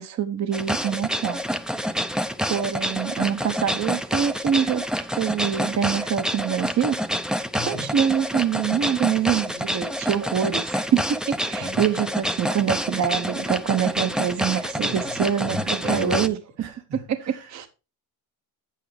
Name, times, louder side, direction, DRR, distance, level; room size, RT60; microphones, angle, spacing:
voice 1, 0.0-1.4 1.8-2.0 2.4-4.8 5.1-7.0 7.6-16.4 16.9-17.7, right 8 dB, 45° right, 1.0 m, -25 dB
sound 1, 0.5-16.3, equal, ahead, 0.6 m, -28 dB
voice 2, 7.5-7.9 11.6-11.9 14.0-14.2 14.7-15.1 15.4-16.3 16.6-17.0 17.2-17.7, right 3 dB, 90° right, 3.4 m, -32 dB
8.8 x 8.4 x 3.3 m
cardioid pair, 105°, 39 cm